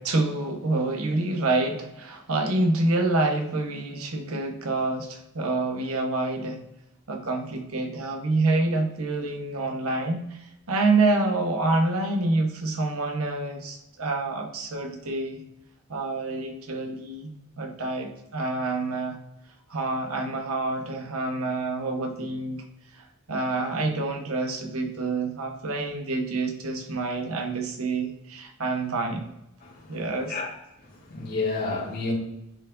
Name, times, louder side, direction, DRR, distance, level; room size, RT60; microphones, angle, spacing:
voice 1, 0.0-6.6 7.1-15.4 15.9-17.3 17.6-19.2 19.7-22.6 23.0-29.3 29.9-30.4, right 2 dB, 90° right, 4 dB, 1.1 m, -27 dB
voice 2, 29.6-30.0 30.3-30.5 30.9-32.1, left 3 dB, 45° left, -6 dB, 2.6 m, -30 dB
10.5 x 4.6 x 2.5 m, 0.86 s
head